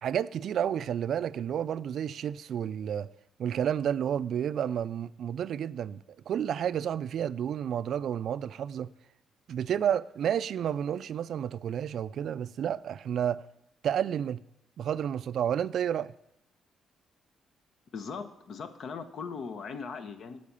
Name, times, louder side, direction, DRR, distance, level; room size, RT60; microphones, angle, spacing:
voice 1, 0.0-3.1 3.4-6.0 6.3-8.9 9.5-13.4 13.8-14.4 14.8-16.1, right 9 dB, 65° right, 0.3 m, -30 dB
voice 2, 17.9-20.4, left 5 dB, 60° left, 0.9 m, -39 dB
8.4 x 6.3 x 6.9 m
cardioid pair, 90°, 0 cm